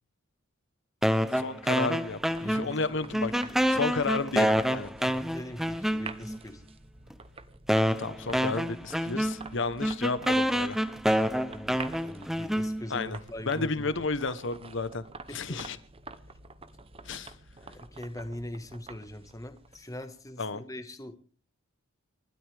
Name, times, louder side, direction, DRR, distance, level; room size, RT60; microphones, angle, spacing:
sound 1, 1.0-2.9 3.1-6.4 7.1-7.2 7.7-13.1, equal, ahead, 0.7 m, -27 dB
voice 1, 1.3-3.3 3.7-4.9 8.0-10.8 12.9-13.2 13.5-15.0 15.3-15.8 17.0-17.3 20.4-20.6, left 3 dB, 60° left, 14 dB, 1.1 m, -32 dB
sound 2, 1.3-20.3, right 3 dB, 25° right, 0.9 m, -48 dB
voice 2, 2.4-2.8 3.4-3.6 5.0-6.6 11.3-14.0 15.3-15.6 17.6-21.2, left 1 dB, 15° left, 8 dB, 1.6 m, -42 dB
29.5 x 12.5 x 3.5 m, 0.39 s
head